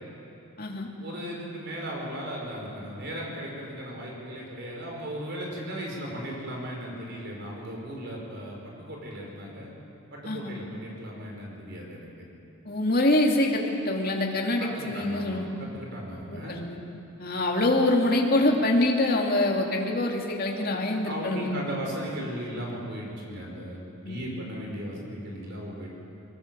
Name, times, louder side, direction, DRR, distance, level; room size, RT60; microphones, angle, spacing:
voice 1, 1.0-9.7 10.1-12.1 14.6-16.6 20.5-25.9, equal, 50° right, -1 dB, 5.2 m, -37 dB
voice 2, 10.2-10.6 12.6-15.5 16.3-16.8 17.2-21.6 24.0-24.4, left 1 dB, 45° left, 0 dB, 2.6 m, -25 dB
22.5 x 19.5 x 7.7 m, 2.9 s
head